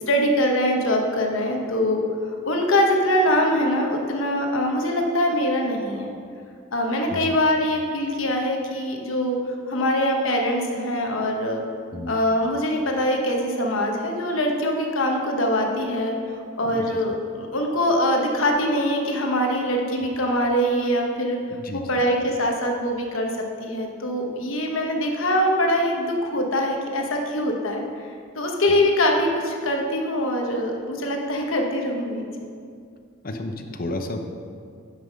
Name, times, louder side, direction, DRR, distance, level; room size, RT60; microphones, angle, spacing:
voice 1, 0.1-2.0 2.4-6.1 6.7-9.4 9.7-11.6 12.1-16.1 16.6-21.4 21.7-23.3 23.6-27.8 28.3-32.5, equal, 75° left, 1 dB, 1.2 m, -23 dB
voice 2, 16.7-17.0 21.5-22.0 28.7-28.9 33.2-34.2, left 2 dB, 45° left, 5 dB, 0.7 m, -32 dB
9.5 x 5.7 x 5.3 m, 2.3 s
head